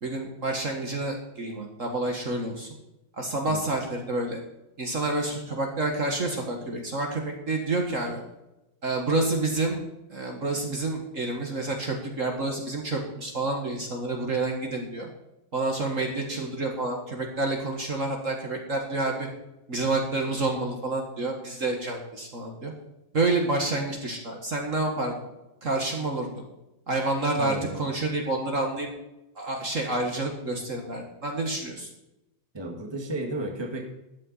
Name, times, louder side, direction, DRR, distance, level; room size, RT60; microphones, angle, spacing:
voice 1, 0.0-2.7 3.2-4.4 4.8-8.2 8.8-9.8 10.1-15.1 15.5-19.3 19.7-22.7 23.1-25.1 25.6-26.3 26.9-28.9 29.4-31.9, right 2 dB, 40° right, 2 dB, 1.9 m, -28 dB
voice 2, 27.4-27.9 32.5-33.8, right 2 dB, 15° right, 1 dB, 1.7 m, -33 dB
12.5 x 9.0 x 4.1 m, 0.94 s
omnidirectional pair, 2.2 m